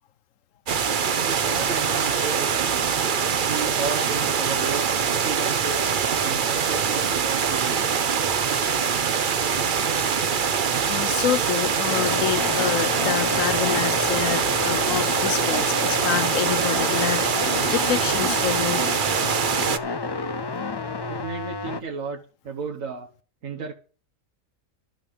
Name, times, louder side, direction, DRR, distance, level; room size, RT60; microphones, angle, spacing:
sound 1, 0.7-19.8, right 6 dB, 45° right, 0.8 m, -24 dB
voice 1, 1.2-2.9 3.4-5.8 6.2-7.8 21.1-23.1 23.4-23.7, right 5 dB, 80° right, 1.6 m, -33 dB
voice 2, 10.9-18.9, left 9 dB, 75° left, 1.2 m, -27 dB
sound 2, 11.9-21.8, left 4 dB, 35° left, 0.4 m, -30 dB
12.0 x 5.9 x 8.6 m
omnidirectional pair, 1.4 m